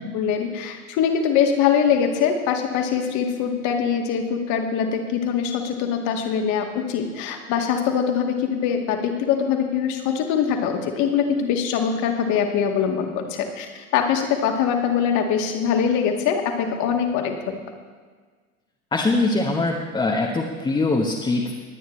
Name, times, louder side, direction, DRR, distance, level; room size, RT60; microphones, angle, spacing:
voice 1, 0.1-17.6, left 7 dB, 45° left, 3 dB, 1.9 m, -23 dB
voice 2, 18.9-21.5, left 2 dB, 10° left, -2 dB, 1.3 m, -22 dB
21.0 x 9.3 x 3.2 m, 1.5 s
figure-of-eight pair, 90°, 43 cm